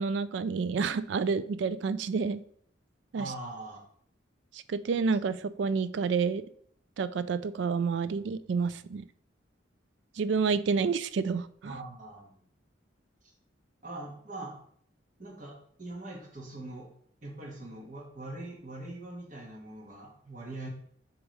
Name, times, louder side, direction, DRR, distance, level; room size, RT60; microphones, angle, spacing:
voice 1, 0.0-2.4 3.1-3.3 4.5-6.4 7.0-9.0 10.2-11.7, right 5 dB, 70° right, 14 dB, 0.3 m, -29 dB
voice 2, 3.2-3.8 11.6-12.4 13.8-14.6 15.2-16.9 17.2-20.7, right 2 dB, 45° right, 0 dB, 1.6 m, -42 dB
7.2 x 3.0 x 4.9 m, 0.63 s
head